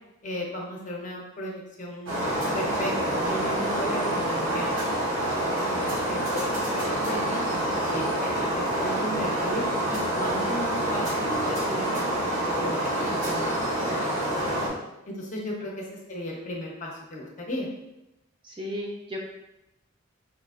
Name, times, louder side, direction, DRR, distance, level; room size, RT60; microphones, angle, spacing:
voice 1, 0.2-2.2 2.5-4.9 5.4-14.2 15.1-17.7, left 1 dB, 40° left, -2 dB, 0.6 m, -36 dB
sound 1, 2.1-14.7, right 1 dB, 85° right, 1.2 m, -27 dB
voice 2, 18.4-19.2, left 1 dB, 25° right, -1 dB, 0.4 m, -35 dB
4.8 x 2.5 x 2.4 m, 0.91 s
head